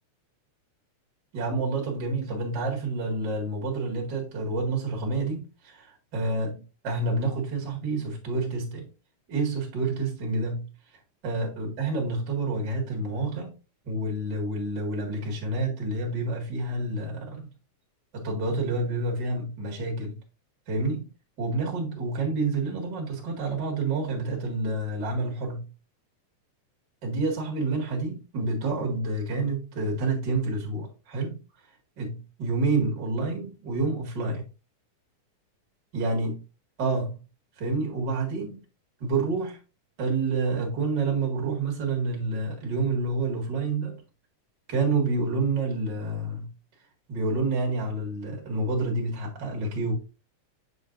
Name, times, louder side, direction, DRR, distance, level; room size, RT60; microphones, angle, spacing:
voice 1, 1.3-6.5 6.8-8.9 9.3-10.7 11.2-13.6 13.8-17.5 18.1-20.2 20.7-21.1 21.4-25.7 27.0-31.4 32.0-34.5 35.9-36.4 36.8-37.2 37.6-38.6 39.0-39.6 40.0-44.0 44.7-46.5 47.1-50.0, right 3 dB, 40° right, 2.4 m, -28 dB
7.1 x 6.8 x 2.6 m
omnidirectional pair, 3.6 m